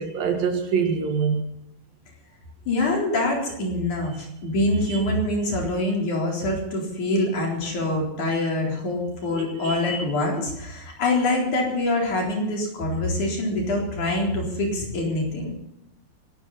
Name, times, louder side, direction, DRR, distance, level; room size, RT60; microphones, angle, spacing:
voice 1, 0.0-1.5 4.9-5.0 9.3-9.8, right 6 dB, 80° right, 4 dB, 3.5 m, -25 dB
voice 2, 2.7-15.6, left 1 dB, 55° left, -1 dB, 5.3 m, -25 dB
24.5 x 13.0 x 4.2 m, 0.79 s
omnidirectional pair, 4.0 m